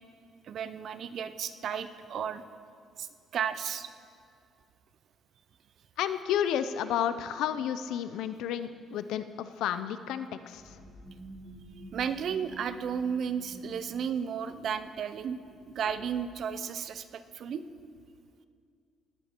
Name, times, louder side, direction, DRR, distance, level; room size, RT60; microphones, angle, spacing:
voice 1, 0.4-2.4 3.0-3.9 11.9-15.4 15.7-17.6, right 7 dB, 45° right, 12 dB, 0.5 m, -33 dB
voice 2, 6.0-10.6, left 9 dB, 85° left, 12 dB, 0.6 m, -31 dB
sound 1, 10.5-16.2, right 1 dB, ahead, 1.8 m, -50 dB
19.0 x 9.8 x 4.5 m, 2.3 s
cardioid pair, 175°, 0 cm